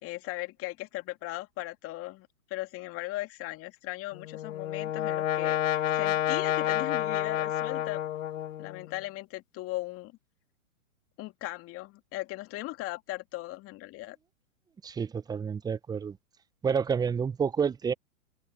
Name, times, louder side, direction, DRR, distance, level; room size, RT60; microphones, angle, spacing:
voice 1, 0.0-5.6 5.9-8.0 8.6-10.2 11.2-14.2, left 18 dB, 30° left, 2.5 m, -38 dB
Brass instrument, 4.1-8.9, left 12 dB, 65° left, 1.8 m, -29 dB
voice 2, 14.8-16.2 16.6-17.9, right 6 dB, 10° right, 0.8 m, -29 dB
hypercardioid pair, 120°, 42 cm